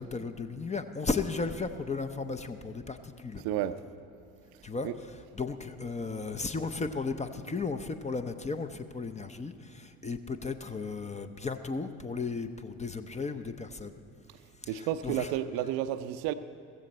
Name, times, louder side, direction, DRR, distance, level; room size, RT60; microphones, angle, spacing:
voice 1, 0.0-3.4 4.6-4.9 5.3-13.9 14.6-15.3, left 4 dB, 15° left, 8 dB, 0.7 m, -35 dB
voice 2, 3.4-3.8 4.8-4.9 14.7-16.3, right 11 dB, 55° right, 12 dB, 0.6 m, -31 dB
15.5 x 15.0 x 4.2 m, 2.4 s
figure-of-eight pair, 50°, 43 cm